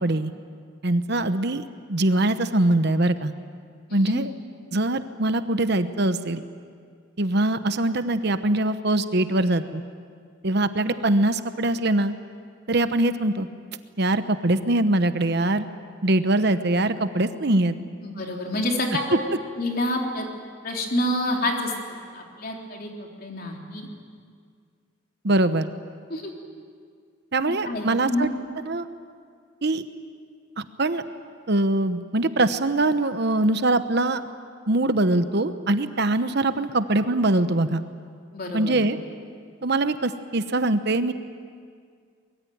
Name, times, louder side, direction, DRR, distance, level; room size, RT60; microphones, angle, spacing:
voice 1, 0.0-0.3 0.8-1.6 1.9-3.3 3.9-4.3 4.7-6.4 7.2-9.8 10.4-12.1 12.7-13.5 14.0-15.7 16.0-17.8 25.2-25.7 27.3-28.3 28.7-28.9 29.6-29.8 30.6-31.0 31.5-34.2 34.7-37.8 38.5-39.0 39.6-41.1, right 2 dB, 55° right, 10 dB, 1.0 m, -22 dB
voice 2, 3.9-4.2 18.0-19.2 19.6-20.3 20.6-23.9 26.1-26.3 27.6-28.3 38.3-38.7, left 1 dB, 50° left, 1 dB, 3.7 m, -28 dB
24.0 x 21.5 x 9.5 m, 2.1 s
head